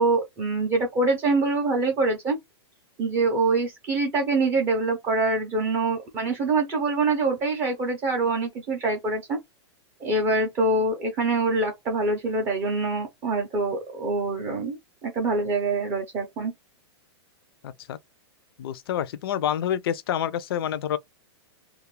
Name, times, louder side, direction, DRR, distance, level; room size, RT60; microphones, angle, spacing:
voice 1, 0.0-2.4 3.0-9.4 10.0-16.5, right 3 dB, 15° right, 0.4 m, -25 dB
voice 2, 17.6-18.0 18.6-21.0, left 10 dB, 55° left, 0.4 m, -28 dB
2.3 x 2.1 x 3.0 m
supercardioid pair, 170°, 15 cm